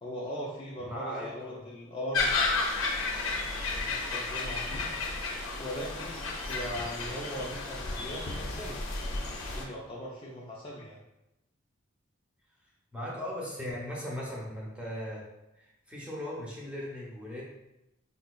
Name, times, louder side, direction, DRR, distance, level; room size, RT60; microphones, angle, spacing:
voice 1, 0.0-2.3 3.3-4.9 5.5-8.8 9.2-11.0, equal, 25° left, -4 dB, 0.3 m, -40 dB
voice 2, 0.9-1.6 12.9-15.3 15.5-17.4, equal, 5° right, -5 dB, 0.7 m, -38 dB
sound 1, 2.1-9.6, left 3 dB, 75° left, 0.6 m, -32 dB
3.8 x 2.7 x 2.3 m, 0.92 s
head